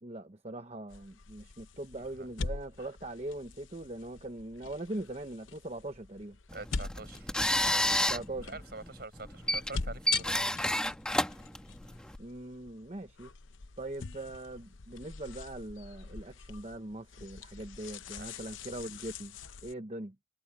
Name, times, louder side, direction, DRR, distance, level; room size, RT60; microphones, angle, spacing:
voice 1, 0.0-6.4 8.1-8.5 12.2-13.3 13.8-19.4 19.6-20.2, right 1 dB, 35° right, 1.0 m, -41 dB
sound 1, 0.9-19.7, left 4 dB, 85° left, 0.8 m, -44 dB
sound 2, 6.5-12.2, left 1 dB, 5° left, 1.3 m, -31 dB
voice 2, 6.5-7.4 7.7-10.5 18.2-18.7, right 3 dB, 55° right, 4.9 m, -46 dB
head